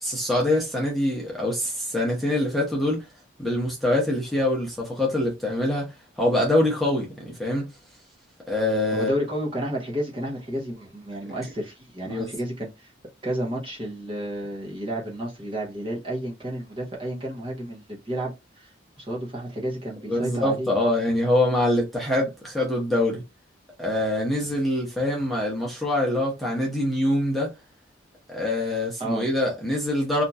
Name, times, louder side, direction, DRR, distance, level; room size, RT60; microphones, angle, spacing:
voice 1, 0.0-3.0 3.4-5.9 6.2-7.7 8.5-9.1 12.1-12.3 20.1-23.2 23.8-27.5 28.3-30.2, left 1 dB, ahead, 0.8 m, -24 dB
voice 2, 8.9-12.9 13.2-20.7 29.0-29.2, right 1 dB, 25° right, 0.8 m, -31 dB
2.9 x 2.6 x 2.3 m
head